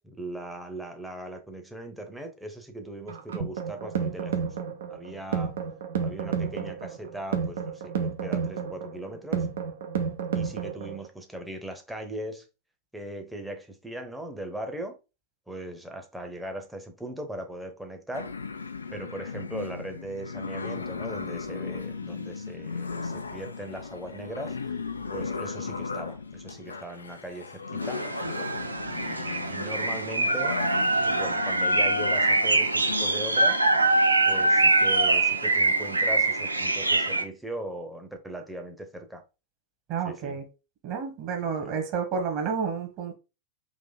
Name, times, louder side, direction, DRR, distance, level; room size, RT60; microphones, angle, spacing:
voice 1, 0.0-4.4 4.9-5.6 6.0-9.5 10.3-12.5 12.9-15.0 15.5-18.4 18.9-24.8 25.1-28.6 28.8-30.6 31.1-33.6 34.3-39.2 40.0-40.4 41.4-41.7, right 1 dB, 5° right, 0.9 m, -39 dB
sound 1, 3.1-11.1, right 6 dB, 60° right, 0.9 m, -31 dB
sound 2, 18.1-33.5, left 4 dB, 75° left, 0.5 m, -36 dB
sound 3, 27.8-37.2, right 2 dB, 80° right, 0.5 m, -24 dB
voice 2, 39.9-40.4 40.8-43.1, right 6 dB, 40° right, 1.5 m, -30 dB
3.9 x 2.8 x 4.0 m
figure-of-eight pair, 90°, 0 cm